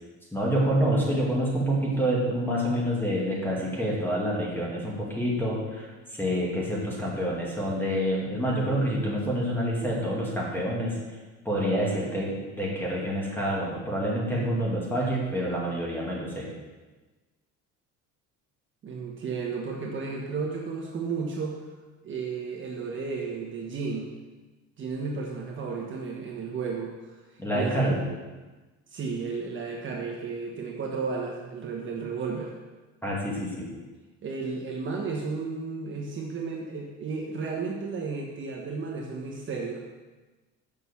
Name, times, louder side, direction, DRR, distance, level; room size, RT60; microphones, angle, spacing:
voice 1, 0.3-11.0 11.4-16.5 27.4-28.0 33.0-33.7, equal, 5° left, -4 dB, 2.4 m, -27 dB
voice 2, 18.8-21.6 22.0-24.1 24.8-27.2 27.5-28.0 28.9-32.5 34.2-39.9, right 4 dB, 40° right, -1 dB, 1.2 m, -33 dB
6.8 x 6.2 x 7.0 m, 1.2 s
cardioid pair, 145°, 31 cm